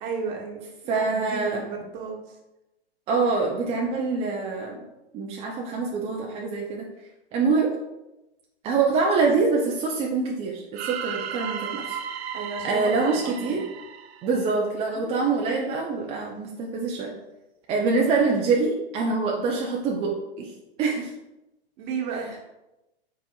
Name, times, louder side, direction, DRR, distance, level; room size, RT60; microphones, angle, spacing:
voice 1, 0.0-2.4 12.3-13.7 15.0-15.1 18.0-18.2 21.8-22.3, right 5 dB, 35° right, 0 dB, 1.0 m, -33 dB
voice 2, 0.9-1.6 3.1-4.8 5.1-6.8 7.3-7.7 8.6-12.0 12.6-13.6 14.2-17.1 17.7-20.1 20.4-20.5 20.8-21.1, right 4 dB, 20° right, -2 dB, 0.4 m, -25 dB
sound 1, 10.7-14.8, right 8 dB, 80° right, 0.5 m, -35 dB
4.6 x 4.0 x 2.3 m, 0.96 s
hypercardioid pair, 120°, 31 cm